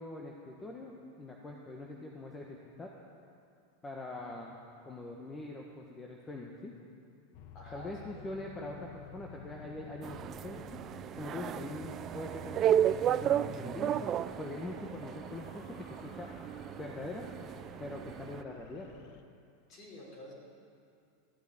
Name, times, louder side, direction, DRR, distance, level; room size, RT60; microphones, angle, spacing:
voice 1, 0.0-2.9 3.8-4.5 4.8-6.7 7.7-10.8 11.2-14.1 14.4-16.3 16.8-17.2 17.8-18.9, left 2 dB, 15° left, -1 dB, 1.4 m, -43 dB
sound 1, 7.3-19.2, left 7 dB, 60° left, 0.9 m, -53 dB
voice 2, 7.5-8.2 19.7-20.3, left 1 dB, 40° left, -2 dB, 4.5 m, -49 dB
sound 2, 10.0-18.4, right 10 dB, 35° right, 0.4 m, -33 dB
14.0 x 8.1 x 8.6 m, 2.4 s
hypercardioid pair, 115°, 0 cm